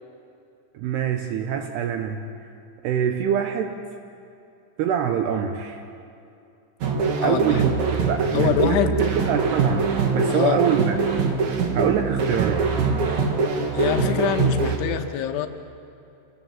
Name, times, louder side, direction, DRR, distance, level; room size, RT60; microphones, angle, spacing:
voice 1, 0.7-2.3 2.8-3.8 4.8-5.8 7.2-11.0 11.7-12.7, right 8 dB, 80° right, 5 dB, 2.5 m, -25 dB
sound 1, 6.8-14.8, right 4 dB, 55° right, 2.2 m, -23 dB
voice 2, 7.2-7.7 8.3-9.0 10.3-10.6 13.7-15.5, left 10 dB, 75° left, 6 dB, 3.4 m, -24 dB
27.5 x 18.5 x 7.4 m, 2.7 s
omnidirectional pair, 5.6 m